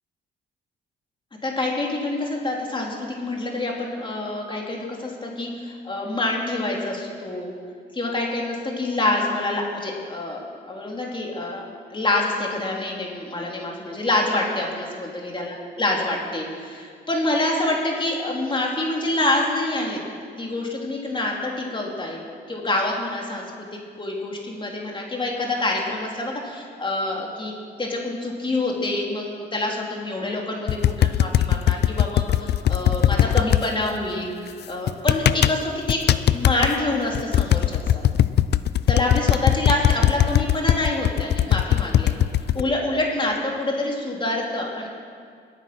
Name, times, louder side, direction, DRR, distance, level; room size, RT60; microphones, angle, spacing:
voice 1, 1.4-7.6 7.9-20.0 20.4-22.2 22.5-23.7 24.0-27.5 27.8-34.3 34.6-36.0 36.3-38.1 38.9-42.2 42.5-44.9, left 2 dB, 25° left, -1 dB, 3.1 m, -26 dB
sound 1, 30.7-33.6 34.9-35.6 35.9-36.7 37.1-42.6, left 11 dB, 55° left, 0.5 m, -19 dB
22.0 x 9.3 x 6.1 m, 2.2 s
cardioid pair, 90°, 20 cm